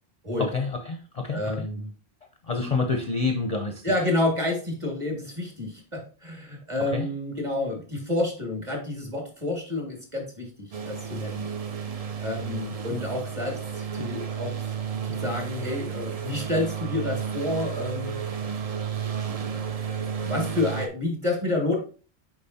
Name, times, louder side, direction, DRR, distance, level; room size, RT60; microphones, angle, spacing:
voice 1, 0.4-1.7 2.4-3.9 6.8-7.1, left 4 dB, 45° left, 5 dB, 0.6 m, -28 dB
voice 2, 1.3-1.9 2.5-2.7 3.8-11.5 12.2-14.5 15.0-18.2 20.2-21.8, left 2 dB, 30° right, 0 dB, 2.0 m, -29 dB
sound 1, 10.7-20.9, right 7 dB, 45° right, 0.6 m, -32 dB
6.9 x 5.1 x 2.7 m, 0.38 s
omnidirectional pair, 1.1 m